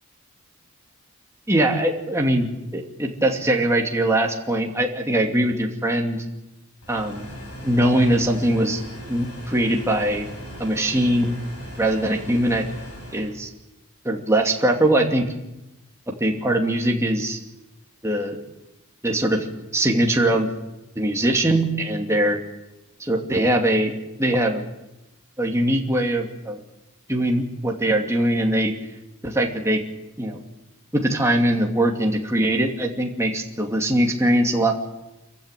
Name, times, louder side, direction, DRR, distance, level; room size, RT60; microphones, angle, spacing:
voice 1, 1.5-2.5 2.7-6.2 6.9-7.3 7.6-8.8 9.1-10.3 10.6-11.3 11.8-12.6 13.1-13.5 14.0-15.2 16.2-17.4 18.0-18.4 19.0-19.5 19.7-20.5 21.0-22.4 23.0-23.9 24.2-24.6 25.4-26.6 27.1-28.7 29.2-29.8 30.2-30.4 30.9-34.8, right 1 dB, 15° right, 1 dB, 2.6 m, -21 dB
sound 1, 6.8-13.3, equal, 90° left, 7.4 m, -38 dB
26.5 x 15.0 x 9.1 m, 0.98 s
head